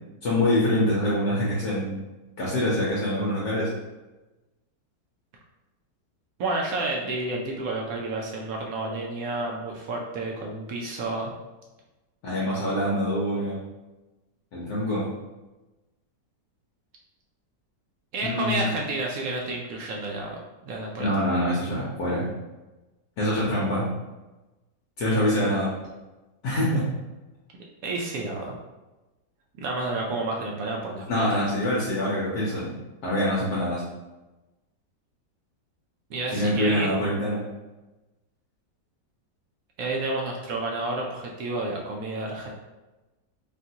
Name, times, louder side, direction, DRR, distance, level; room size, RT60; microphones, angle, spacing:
voice 1, 0.2-2.0 2.4-3.7 12.2-13.6 14.5-15.1 18.2-18.7 21.0-22.3 23.2-23.9 25.0-25.7 26.4-26.9 31.1-32.7 33.0-33.8 36.3-37.4, left 1 dB, 65° left, -6 dB, 1.2 m, -25 dB
voice 2, 6.4-11.3 18.1-21.1 27.8-28.5 29.6-31.0 36.1-36.9 39.8-42.5, right 2 dB, 75° right, 0 dB, 0.8 m, -30 dB
3.6 x 2.5 x 2.7 m, 1.1 s
omnidirectional pair, 2.0 m